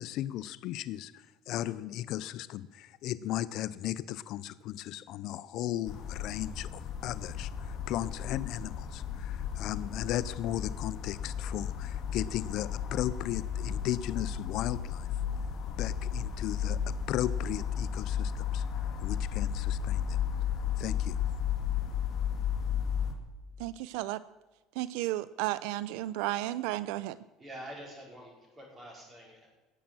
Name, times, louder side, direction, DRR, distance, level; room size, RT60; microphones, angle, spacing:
voice 1, 0.0-15.1 15.7-20.2 20.8-21.2, left 13 dB, 60° left, 16 dB, 0.5 m, -36 dB
sound 1, 5.9-23.1, left 8 dB, 40° left, 2.2 m, -34 dB
voice 2, 23.6-24.2 24.8-27.2, right 16 dB, 80° right, 16 dB, 0.4 m, -33 dB
voice 3, 27.4-29.5, right 1 dB, 20° right, -1 dB, 4.8 m, -46 dB
18.5 x 7.3 x 7.6 m, 1.2 s
cardioid pair, 140°, 0 cm